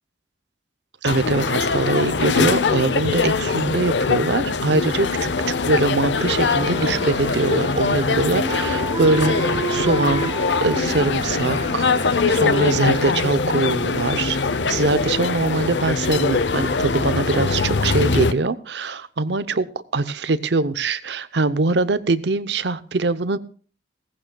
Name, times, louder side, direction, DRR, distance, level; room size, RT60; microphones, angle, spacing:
voice 1, 1.0-10.3 10.6-12.0 12.2-14.4 14.7-19.7 19.9-23.4, right 3 dB, 70° right, 15 dB, 0.8 m, -22 dB
sound 1, 1.1-18.3, left 4 dB, 75° left, 0.7 m, -22 dB
sound 2, 6.2-13.6, right 2 dB, 25° right, 0.7 m, -31 dB
18.5 x 15.0 x 2.3 m, 0.40 s
head